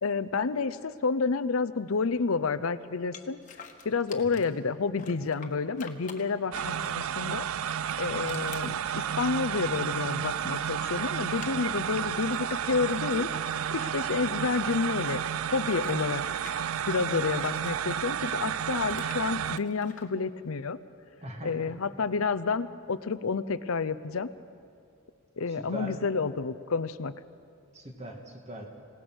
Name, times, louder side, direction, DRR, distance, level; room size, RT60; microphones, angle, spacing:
voice 1, 0.0-3.4 3.8-7.5 8.0-13.3 13.7-15.2 15.5-16.2 16.9-20.8 21.4-24.3 25.4-27.1, left 4 dB, 85° left, 14 dB, 0.7 m, -29 dB
sound 1, 3.1-4.6 5.0-7.1 7.6-10.1 10.4-14.5 14.8-17.7 18.2-20.1, left 6 dB, 40° left, 1.4 m, -49 dB
sound 2, 6.5-19.6, right 9 dB, 85° right, 0.4 m, -32 dB
voice 2, 21.2-21.7 25.6-25.9 27.7-28.7, right 1 dB, 30° right, 2 dB, 2.2 m, -40 dB
27.0 x 18.0 x 6.2 m, 2.4 s
head